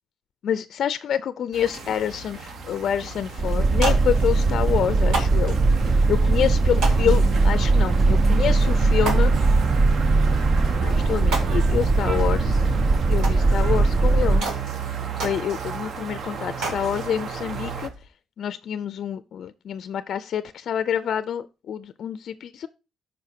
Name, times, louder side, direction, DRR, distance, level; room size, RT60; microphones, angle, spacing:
voice 1, 0.4-5.6 6.1-9.3 10.8-12.6 13.1-14.5 15.2-17.9 18.4-22.7, left 9 dB, 65° left, 0.4 m, -27 dB
sound 1, 1.5-17.9, right 5 dB, 60° right, 1.0 m, -33 dB
sound 2, 1.7-2.1 2.8-2.9 3.1-3.2 3.6-4.6 5.0-6.0 6.8-7.6 8.0-8.1 8.5-8.6 9.0-10.0 10.7-10.8 11.1-12.2 12.5-12.6 13.2-13.9 14.4-16.0 16.3-17.1 17.5-18.1, right 3 dB, 85° right, 1.9 m, -33 dB
Boat Water vehicle, 3.4-14.4, right 3 dB, 40° right, 0.5 m, -20 dB
12.5 x 5.1 x 2.7 m
cardioid pair, 90°, 0 cm